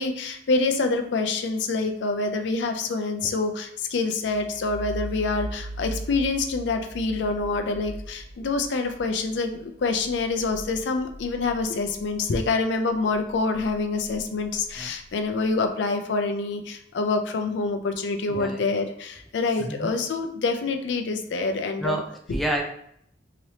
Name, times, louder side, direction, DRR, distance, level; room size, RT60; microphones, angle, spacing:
voice 1, 0.0-22.0 22.3-22.4, left 3 dB, 85° left, 6 dB, 0.4 m, -26 dB
sound 1, 4.2-12.5 12.9-15.5, right 1 dB, 55° left, 1.1 m, -40 dB
voice 2, 18.3-18.6 19.6-19.9 21.8-22.6, right 1 dB, ahead, 1 dB, 0.3 m, -29 dB
3.1 x 2.9 x 2.8 m, 0.71 s
head